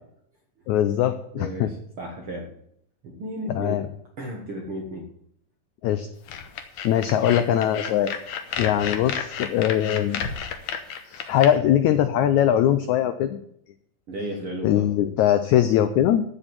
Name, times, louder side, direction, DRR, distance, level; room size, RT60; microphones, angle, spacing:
voice 1, 0.7-1.7 3.5-3.9 5.8-6.1 6.8-8.1 8.6-10.2 11.1-13.4 14.6-16.2, left 11 dB, 80° left, 11 dB, 1.7 m, -21 dB
voice 2, 1.4-2.5 3.0-3.8 4.2-5.1 14.1-14.9, right 1 dB, 50° right, 1 dB, 1.8 m, -34 dB
sound 1, 6.3-11.5, left 7 dB, 65° left, 2.0 m, -32 dB
14.0 x 5.3 x 8.7 m, 0.71 s
omnidirectional pair, 4.1 m